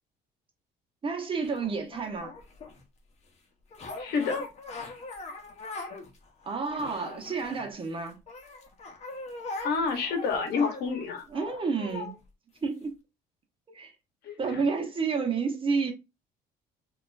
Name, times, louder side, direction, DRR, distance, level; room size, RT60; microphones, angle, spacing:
voice 1, 1.0-2.3 6.5-8.2 11.3-12.2 12.6-12.9 13.7-13.9 14.4-15.9, right 5 dB, 30° right, 0.9 m, -30 dB
sound 1, 1.4-2.8 3.7-6.1 6.4-7.9 8.3-12.1 12.8-12.9, left 3 dB, 40° left, 0.9 m, -40 dB
voice 2, 4.0-4.4 9.6-11.2 14.2-14.6, left 5 dB, 70° left, 0.9 m, -29 dB
4.2 x 2.5 x 2.5 m
cardioid pair, 110°, 17 cm